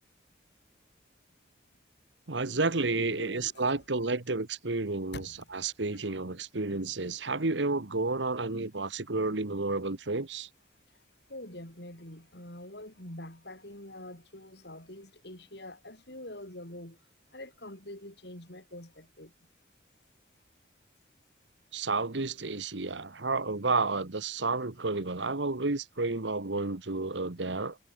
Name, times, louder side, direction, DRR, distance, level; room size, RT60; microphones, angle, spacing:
voice 1, 2.3-10.5 21.7-27.8, right 3 dB, 80° right, 1.5 m, -31 dB
voice 2, 3.0-3.8 5.1-5.5 11.3-17.0 17.3-19.3, left 1 dB, 65° left, 7.5 m, -45 dB
head